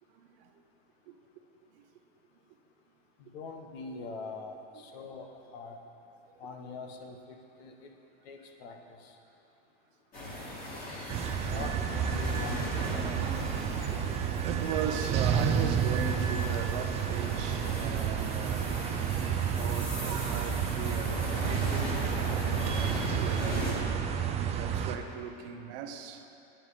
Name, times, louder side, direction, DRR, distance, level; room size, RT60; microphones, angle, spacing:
voice 1, 0.1-0.5 1.1-1.2 1.7-1.8 6.3-6.4 11.4-11.5 14.1-18.9 19.5-23.9 24.6-26.4, right 8 dB, 60° right, 0.8 m, -39 dB
voice 2, 3.2-5.8 6.4-7.9 8.2-9.2 11.5-13.2, left 4 dB, 75° left, 1.2 m, -43 dB
sound 1, 10.1-23.7, left 1 dB, 30° left, 2.2 m, -38 dB
sound 2, 11.1-25.0, right 8 dB, 20° right, 0.4 m, -31 dB
9.0 x 7.8 x 5.0 m
supercardioid pair, 140°, 32 cm